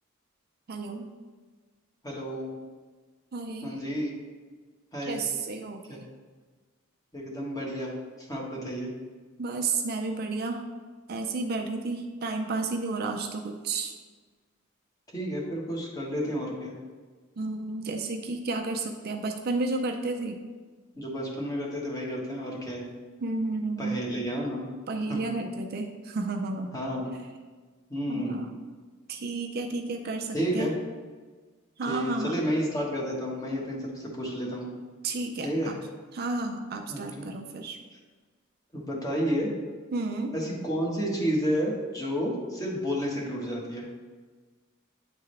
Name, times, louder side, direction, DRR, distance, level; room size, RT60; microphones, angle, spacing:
voice 1, 0.7-1.1 3.3-3.8 5.0-6.0 9.4-10.6 11.1-13.9 17.4-20.4 23.2-24.0 24.9-26.7 28.1-28.5 29.1-30.7 31.8-32.4 35.0-35.7 36.1-37.8 39.9-40.4, right 3 dB, 45° right, 4 dB, 0.5 m, -32 dB
voice 2, 2.0-2.5 3.6-4.1 4.9-5.2 5.9-6.0 7.1-7.9 8.2-8.9 15.1-16.7 21.0-22.9 23.8-24.7 25.1-25.2 26.7-27.1 27.9-28.4 30.3-30.7 31.9-34.7 35.4-35.7 36.9-37.3 38.7-39.5 40.3-43.9, equal, 15° left, -3 dB, 1.3 m, -31 dB
9.5 x 3.6 x 3.3 m, 1.4 s
head